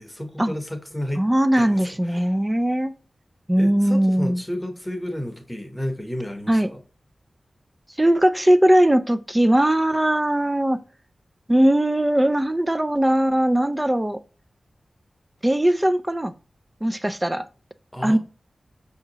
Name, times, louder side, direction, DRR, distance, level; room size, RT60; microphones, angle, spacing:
voice 1, 0.0-1.2 1.6-2.4 3.6-6.8 17.9-18.2, equal, 15° left, 0.8 m, -32 dB
voice 2, 1.2-2.9 3.5-4.4 6.5-6.7 8.0-10.8 11.5-14.2 15.4-16.3 16.8-17.4 18.0-18.2, right 1 dB, 15° right, 0.3 m, -19 dB
5.7 x 2.8 x 2.8 m
wide cardioid pair, 70°, 0 cm